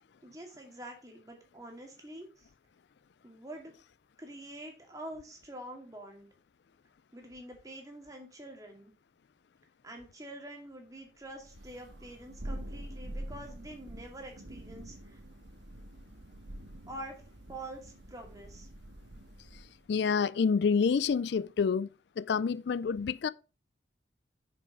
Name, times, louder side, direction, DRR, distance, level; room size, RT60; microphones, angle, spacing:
voice 1, 0.2-2.5 3.2-3.7 4.2-6.3 7.1-8.9 9.8-15.2 16.9-17.2 17.5-18.7, right 1 dB, 20° right, 2.3 m, -46 dB
Thunder, 11.4-19.8, right 1 dB, 80° right, 1.5 m, -45 dB
voice 2, 19.9-21.9 22.2-23.3, left 5 dB, 70° left, 0.4 m, -28 dB
6.8 x 6.8 x 5.2 m
head